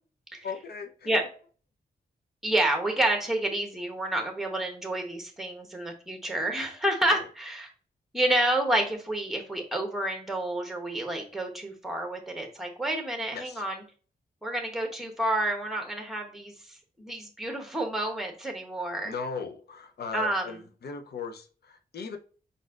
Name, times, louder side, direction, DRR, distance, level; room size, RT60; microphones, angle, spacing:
voice 1, 0.4-1.1 7.1-7.2 13.3-13.6 19.0-22.2, left 5 dB, 70° left, 6 dB, 0.7 m, -38 dB
voice 2, 2.4-7.7 8.1-13.8 14.4-16.5 17.0-19.1 20.1-20.5, right 1 dB, ahead, 3 dB, 1.0 m, -29 dB
5.1 x 4.2 x 2.4 m, 0.40 s
wide cardioid pair, 175°, 17 cm